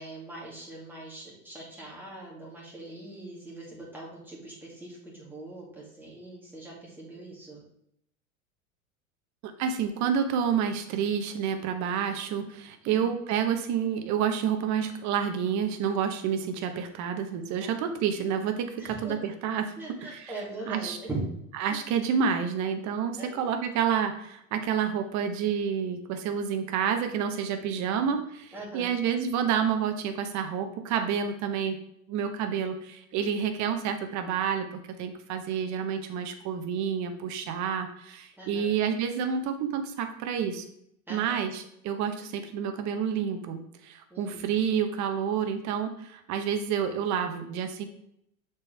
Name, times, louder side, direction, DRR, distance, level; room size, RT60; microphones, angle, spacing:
voice 1, 0.0-7.6 12.8-13.0 17.6-17.7 18.8-19.1 19.8-21.3 21.7-21.8 23.2-23.5 28.5-28.9 38.4-38.7 41.1-41.4 44.1-44.4, right 2 dB, 5° right, -4 dB, 2.4 m, -41 dB
voice 2, 9.4-19.7 20.7-21.0 21.6-31.8 32.1-40.6 41.1-47.8, right 7 dB, 40° right, 7 dB, 1.0 m, -29 dB
6.6 x 4.6 x 3.4 m, 0.74 s
hypercardioid pair, 105°, 42 cm